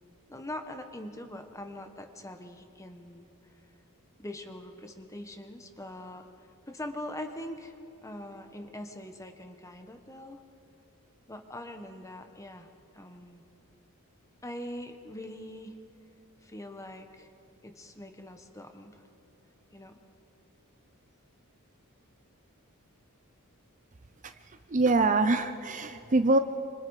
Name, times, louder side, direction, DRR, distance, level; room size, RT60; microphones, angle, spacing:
voice 1, 0.3-3.3 4.2-6.3 6.7-7.8 8.0-10.4 11.3-13.4 14.4-15.8 16.4-17.3 17.6-19.0 19.7-20.0, left 1 dB, 15° left, 6 dB, 1.4 m, -42 dB
voice 2, 24.7-26.4, right 3 dB, 35° right, 9 dB, 0.7 m, -24 dB
27.5 x 26.0 x 4.9 m, 3.0 s
head